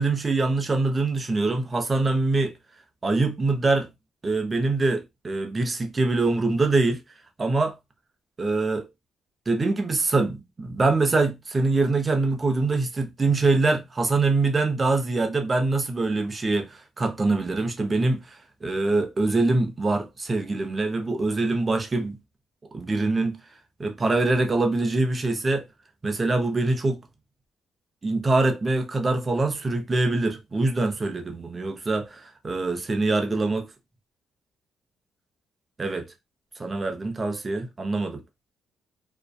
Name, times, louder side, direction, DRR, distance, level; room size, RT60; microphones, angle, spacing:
voice 1, 0.0-2.6 3.0-3.9 4.2-7.0 7.4-7.8 8.4-8.9 9.5-18.2 18.6-22.2 22.7-23.4 23.8-25.6 26.0-27.0 28.0-33.7 35.8-36.1 36.6-38.2, right 3 dB, 30° right, 0.6 m, -24 dB
2.5 x 2.2 x 2.2 m
cardioid pair, 90°, 0 cm